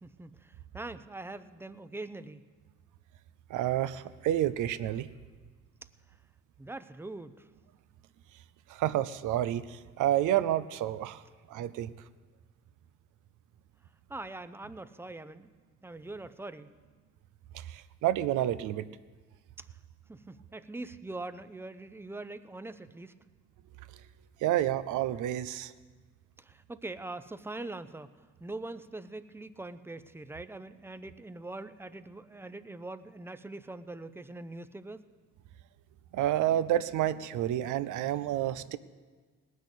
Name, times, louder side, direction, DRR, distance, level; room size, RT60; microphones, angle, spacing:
voice 1, 0.0-2.4 6.6-7.5 14.1-15.5 15.8-16.7 20.1-23.1 26.4-28.1 28.4-35.0, right 2 dB, 10° right, 12 dB, 0.6 m, -42 dB
voice 2, 3.5-5.1 8.7-11.9 17.5-18.9 23.9-24.0 24.4-25.7 36.1-38.8, right 12 dB, 85° right, 14 dB, 0.6 m, -29 dB
18.5 x 6.4 x 8.1 m, 1.4 s
cardioid pair, 90°, 30 cm